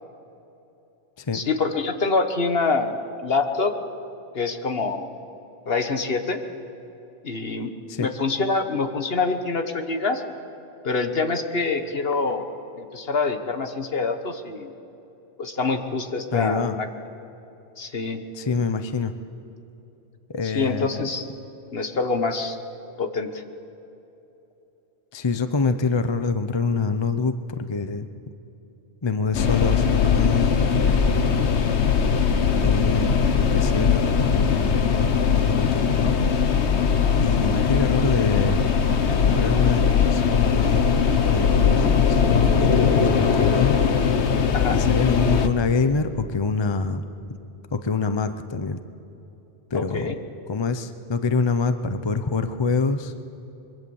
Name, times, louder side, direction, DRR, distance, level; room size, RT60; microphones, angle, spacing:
voice 1, 1.3-3.7 4.3-5.2 5.7-6.4 7.2-7.7 8.0-10.2 10.8-12.4 12.8-14.7 15.4-16.9 17.8-18.2 20.4-21.3 21.7-22.6 23.0-23.3 44.5-44.8 49.7-50.2, left 4 dB, 60° left, 7 dB, 1.6 m, -25 dB
voice 2, 16.3-16.8 18.3-19.1 20.3-21.1 25.1-28.1 29.0-31.5 32.6-36.2 37.2-38.6 39.1-43.8 44.7-47.0 47.3-47.4 47.7-48.8 49.7-50.1 50.5-53.1, left 4 dB, 30° left, 9 dB, 0.7 m, -26 dB
sound 1, 29.3-45.5, left 6 dB, 80° left, 1.4 m, -20 dB
24.5 x 22.5 x 7.2 m, 3.0 s
omnidirectional pair, 1.1 m